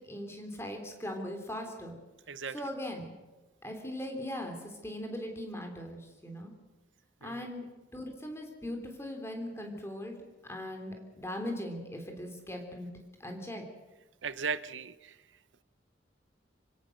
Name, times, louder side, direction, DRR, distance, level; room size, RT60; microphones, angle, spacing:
voice 1, 0.0-2.0 2.5-3.1 3.6-6.5 7.2-10.2 10.5-12.9 13.2-13.6, left 1 dB, 15° left, 4 dB, 3.5 m, -39 dB
voice 2, 14.2-15.2, right 5 dB, 90° right, 15 dB, 0.8 m, -37 dB
27.0 x 17.0 x 6.6 m, 1.2 s
head